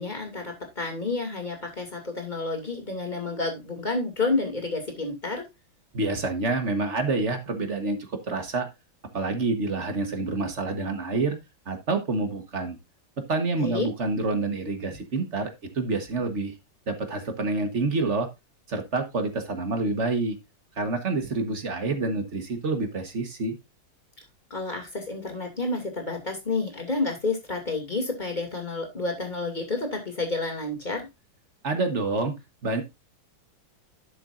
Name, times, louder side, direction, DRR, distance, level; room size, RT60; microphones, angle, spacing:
voice 1, 0.0-5.4 13.6-13.9 24.5-31.1, left 3 dB, 25° left, 3 dB, 2.6 m, -30 dB
voice 2, 5.9-8.7 9.1-11.4 11.7-12.8 13.3-16.5 16.9-18.3 18.7-20.3 20.8-23.6 31.6-32.3 32.6-32.8, right 3 dB, 40° right, 7 dB, 1.4 m, -27 dB
11.5 x 6.9 x 2.5 m, 0.22 s
omnidirectional pair, 2.1 m